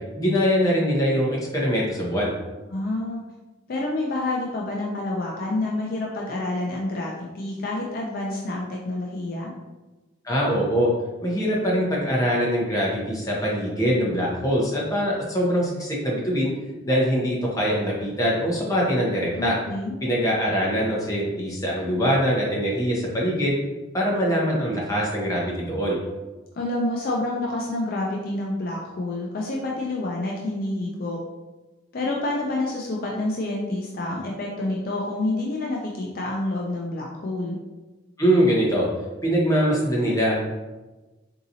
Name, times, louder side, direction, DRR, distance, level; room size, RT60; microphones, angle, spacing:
voice 1, 0.2-2.3 10.2-10.9 11.2-16.5 16.9-19.6 20.0-23.5 23.9-26.0 38.2-38.9 39.2-40.3, equal, 15° left, -4 dB, 0.8 m, -23 dB
voice 2, 2.7-3.2 3.7-9.5 19.3-19.9 26.5-31.2 31.9-37.6, left 2 dB, 50° left, -2 dB, 0.4 m, -28 dB
3.8 x 2.7 x 2.7 m, 1.1 s
head